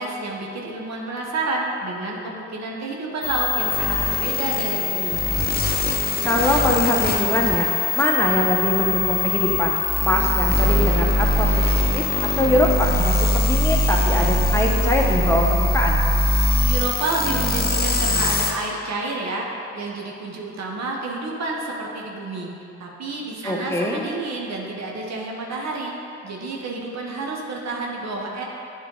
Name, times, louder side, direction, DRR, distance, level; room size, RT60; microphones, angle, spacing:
voice 1, 0.0-5.2 16.4-19.5 19.7-22.5 22.8-25.9 26.2-28.4, right 2 dB, 60° right, -1 dB, 1.0 m, -29 dB
sound 1, 3.2-18.5, left 2 dB, 30° left, 0.8 m, -22 dB
voice 2, 6.2-9.7 10.0-12.1 12.4-16.0 23.4-24.1, left 1 dB, 10° left, -1 dB, 1.0 m, -22 dB
8.7 x 3.5 x 3.8 m, 2.8 s
supercardioid pair, 50°, 31 cm